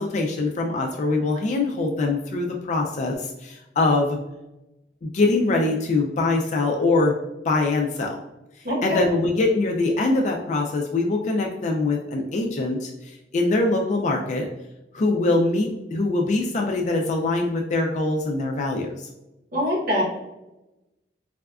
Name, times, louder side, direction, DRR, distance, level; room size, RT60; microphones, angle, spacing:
voice 1, 0.0-4.2 5.0-7.1 7.4-8.2 8.8-14.5 14.9-19.1, left 2 dB, 40° left, 1 dB, 0.3 m, -23 dB
voice 2, 8.6-9.0 19.5-20.0, equal, 55° right, -4 dB, 1.2 m, -23 dB
4.1 x 2.3 x 2.3 m, 0.96 s
head